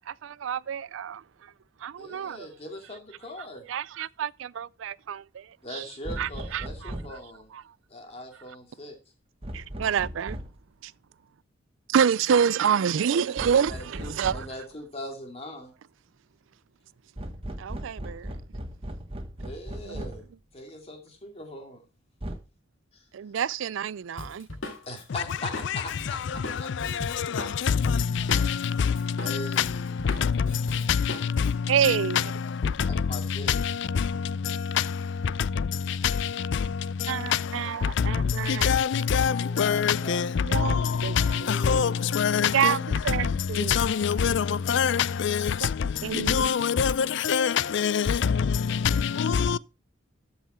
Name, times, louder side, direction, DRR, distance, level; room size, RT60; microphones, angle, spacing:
voice 1, 0.1-1.5 1.8-2.5 3.7-5.8 6.2-6.9 7.5-7.6 9.5-10.4 10.8-10.9 11.9-14.5 17.6-18.3 19.8-20.1 23.1-24.5 31.7-32.2 37.1-38.7 40.4-41.4 42.5-43.8 45.6-45.7 46.0-46.5, right 8 dB, 75° right, 0.4 m, -28 dB
voice 2, 2.0-3.7 5.6-7.5 7.9-9.0 13.1-15.7 19.4-20.3 20.5-21.8 22.9-23.0 24.9-26.9 29.2-30.2 32.9-33.5 39.4-40.5 41.4-42.0, left 1 dB, 30° left, 2.5 m, -41 dB
sound 1, 6.0-7.2 9.4-10.6 13.4-14.6 17.2-20.3 22.2-22.4, right 1 dB, 30° right, 1.3 m, -37 dB
Drum kit, 24.2-28.7 29.0-31.5, left 2 dB, 80° left, 2.5 m, -38 dB
voice 3, 38.6-39.3 39.6-40.2 41.7-41.9 42.2-42.5 43.8-44.4 44.7-44.9 46.3-46.9 47.3-47.5 47.7-48.0, left 7 dB, 65° left, 0.4 m, -23 dB
13.0 x 5.7 x 4.3 m
head